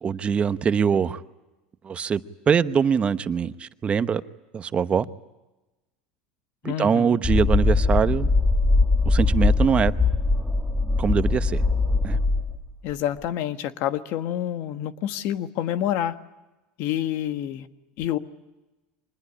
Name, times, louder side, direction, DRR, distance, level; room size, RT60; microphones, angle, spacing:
voice 1, 0.0-1.2 1.8-2.2 2.5-4.2 4.5-5.0 6.6-8.3 9.1-9.9 11.0-11.6 12.0-12.2, right 6 dB, 25° right, 13 dB, 0.9 m, -23 dB
voice 2, 6.6-7.2 12.8-16.1 16.8-17.7 18.0-18.2, left 11 dB, 60° left, 10 dB, 1.4 m, -28 dB
sound 1, 7.2-12.6, left 3 dB, ahead, 2.0 m, -21 dB
25.0 x 20.5 x 9.9 m, 1.1 s
supercardioid pair, 120°, 4 cm